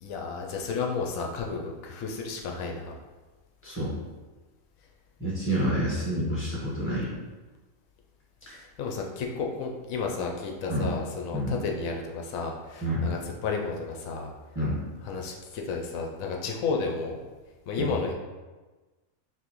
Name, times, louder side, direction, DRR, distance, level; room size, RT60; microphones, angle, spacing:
voice 1, 0.0-2.9 8.5-14.3 15.0-17.2 17.7-18.1, left 4 dB, 85° left, 1 dB, 1.0 m, -32 dB
voice 2, 3.6-3.9 5.2-7.1 8.5-8.6 10.7-10.9 11.3-11.6 12.8-13.1 14.5-14.8 17.8-17.9, equal, 10° left, -8 dB, 1.1 m, -28 dB
5.9 x 2.1 x 3.0 m, 1.2 s
omnidirectional pair, 1.4 m